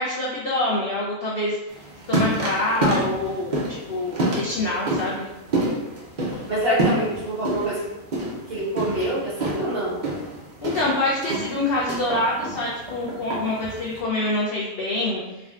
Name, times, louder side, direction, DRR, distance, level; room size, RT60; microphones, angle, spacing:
voice 1, 0.0-1.6 2.1-3.6 3.9-5.3 10.6-15.2, left 2 dB, 75° left, -5 dB, 0.5 m, -25 dB
sound 1, 1.7-14.0, right 1 dB, 65° right, 0.4 m, -28 dB
voice 2, 6.3-7.8 8.5-10.0, right 1 dB, 50° right, -7 dB, 0.8 m, -26 dB
3.6 x 2.2 x 2.3 m, 1.0 s
omnidirectional pair, 1.5 m